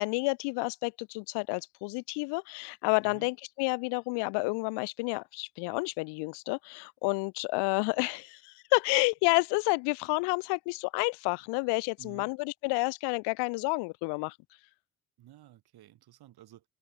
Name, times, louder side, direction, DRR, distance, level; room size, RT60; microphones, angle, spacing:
voice 1, 0.0-14.4, left 29 dB, 65° left, 0.9 m, -30 dB
voice 2, 12.0-12.3 15.2-16.6, right 13 dB, 60° right, 4.6 m, -53 dB
figure-of-eight pair, 45°, 44 cm